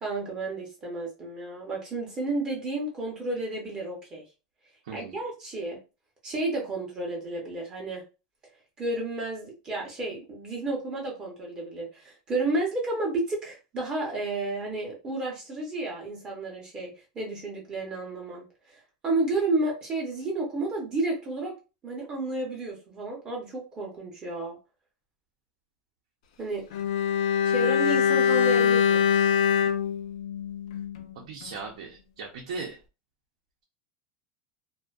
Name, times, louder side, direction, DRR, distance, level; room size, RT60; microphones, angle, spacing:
voice 1, 0.0-4.2 4.9-5.8 6.2-8.0 8.8-21.5 21.8-24.6 26.4-26.7 27.4-29.0, right 2 dB, 20° right, -1 dB, 0.6 m, -31 dB
Bowed string instrument, 26.7-31.1 31.4-31.6, left 8 dB, 85° left, 0.4 m, -24 dB
voice 2, 31.2-32.8, right 4 dB, 80° right, -1 dB, 0.6 m, -38 dB
2.5 x 2.1 x 2.3 m, 0.31 s
supercardioid pair, 175°, 4 cm